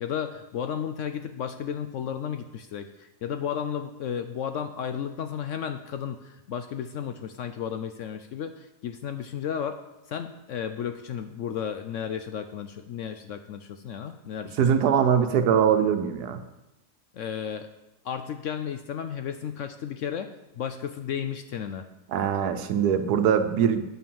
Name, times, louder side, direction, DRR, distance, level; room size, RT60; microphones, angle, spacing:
voice 1, 0.0-9.8 10.1-14.6 17.1-17.7 18.0-20.3 20.6-21.9, left 8 dB, 70° left, 8 dB, 0.8 m, -33 dB
voice 2, 14.6-16.4 22.1-23.8, right 8 dB, 80° right, 9 dB, 1.3 m, -22 dB
8.7 x 5.7 x 7.1 m, 0.95 s
omnidirectional pair, 1.7 m